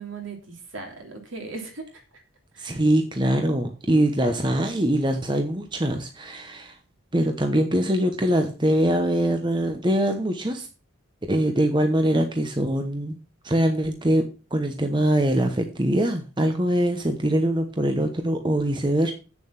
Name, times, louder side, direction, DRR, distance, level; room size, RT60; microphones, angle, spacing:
voice 1, 0.0-2.0 2.5-2.8, right 4 dB, 65° right, 3 dB, 3.1 m, -38 dB
voice 2, 2.6-6.8 7.1-10.7 11.3-13.2 13.4-19.1, right 1 dB, 20° right, 5 dB, 1.0 m, -23 dB
8.6 x 7.2 x 5.9 m, 0.34 s
head